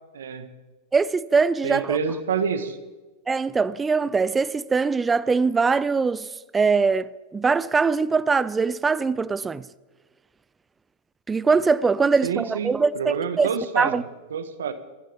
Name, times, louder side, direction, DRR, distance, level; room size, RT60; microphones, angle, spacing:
voice 1, 0.1-0.5 1.6-2.8 12.2-13.9 14.3-14.7, right 6 dB, 80° right, 1.5 m, -27 dB
voice 2, 0.9-2.0 3.3-6.3 6.5-9.7 11.3-13.5 13.8-14.0, right 4 dB, 15° right, 0.6 m, -22 dB
25.0 x 11.5 x 3.6 m
hypercardioid pair, 100°, 0 cm